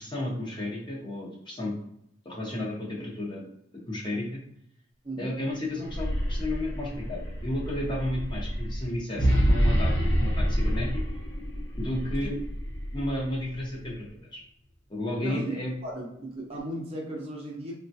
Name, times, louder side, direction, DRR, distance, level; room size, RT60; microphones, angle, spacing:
voice 1, 0.0-1.7 2.2-3.5 3.9-4.4 5.2-10.9 11.8-12.4 12.9-14.4 14.9-15.7, left 1 dB, 25° left, -4 dB, 0.7 m, -33 dB
voice 2, 5.0-5.3 12.2-12.3 15.2-15.5 15.8-17.7, right 1 dB, 30° right, -2 dB, 0.7 m, -36 dB
sound 1, 5.7-13.9, equal, 65° left, 0.9 m, -28 dB
3.5 x 2.2 x 2.7 m, 0.75 s
head